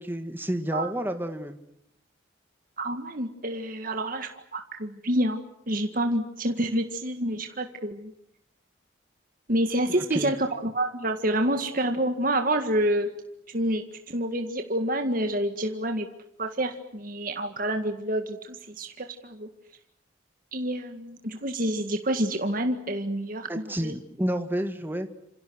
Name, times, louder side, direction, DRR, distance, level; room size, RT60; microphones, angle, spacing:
voice 1, 0.0-1.6 10.1-10.3 23.5-25.1, equal, 10° right, 7 dB, 2.0 m, -30 dB
voice 2, 2.8-8.1 9.5-13.1 13.5-16.1 16.4-19.5 20.5-23.9, right 1 dB, 45° right, 5 dB, 1.9 m, -28 dB
28.0 x 27.0 x 6.4 m, 0.78 s
head